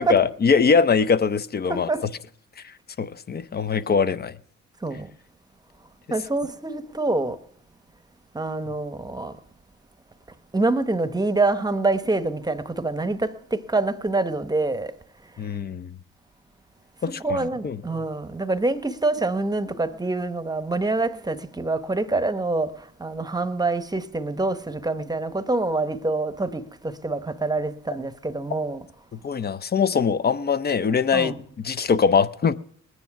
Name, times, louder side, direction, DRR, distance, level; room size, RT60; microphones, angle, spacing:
voice 1, 0.1-1.9 3.0-4.4 15.4-15.9 17.0-17.8 29.1-32.5, left 5 dB, 35° left, 0.6 m, -22 dB
voice 2, 1.7-2.1 4.8-5.1 6.1-7.4 8.3-9.4 10.5-14.9 17.1-28.8 31.1-31.4, right 2 dB, 15° right, 0.9 m, -26 dB
19.5 x 9.8 x 5.9 m
cardioid pair, 90°, 30 cm